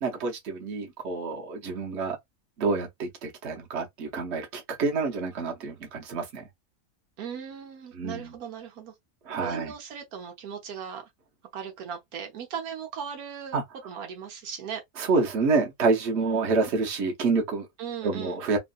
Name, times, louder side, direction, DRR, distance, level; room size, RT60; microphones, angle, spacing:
voice 1, 0.0-2.2 2.6-6.4 7.9-8.3 9.3-9.7 13.5-13.6 15.0-17.7 18.0-18.6, right 4 dB, 55° right, 1.2 m, -27 dB
voice 2, 7.2-8.9 9.3-11.1 11.5-13.6 13.8-15.1 16.1-16.4 17.8-18.4, right 8 dB, 85° right, 1.3 m, -38 dB
3.1 x 2.4 x 2.5 m
omnidirectional pair, 1.5 m